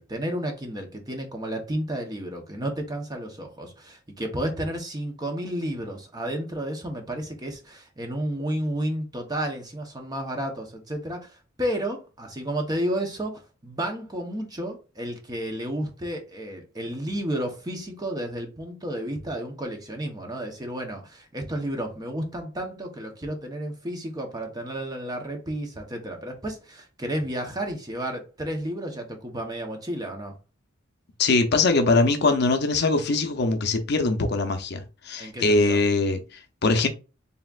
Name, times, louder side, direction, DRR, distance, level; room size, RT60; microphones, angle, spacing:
voice 1, 0.0-30.3 35.2-35.8, right 1 dB, 20° right, 0.8 m, -32 dB
voice 2, 31.2-36.9, left 3 dB, 55° left, 0.6 m, -22 dB
4.2 x 3.5 x 2.4 m
head